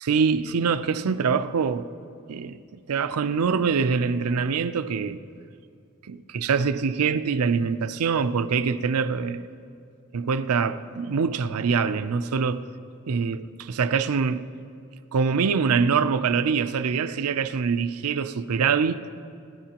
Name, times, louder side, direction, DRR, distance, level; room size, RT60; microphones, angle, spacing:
voice 1, 0.0-1.9 2.3-2.6 2.9-5.2 6.1-9.5 10.1-12.7 13.1-14.4 15.1-19.0, right 5 dB, 75° right, 0.5 m, -24 dB
29.0 x 10.5 x 2.9 m
head